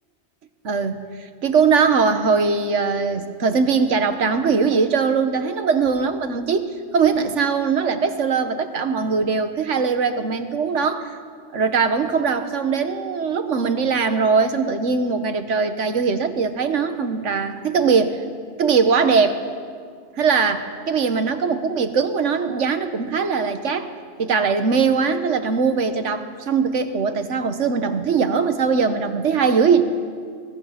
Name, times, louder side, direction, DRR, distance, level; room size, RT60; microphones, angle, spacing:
voice 1, 0.6-1.0 1.4-11.2 11.5-18.2 18.6-19.4 20.2-23.9 24.2-29.8, right 5 dB, 90° right, 9 dB, 1.5 m, -21 dB
22.5 x 20.0 x 5.9 m, 2.1 s
omnidirectional pair, 1.2 m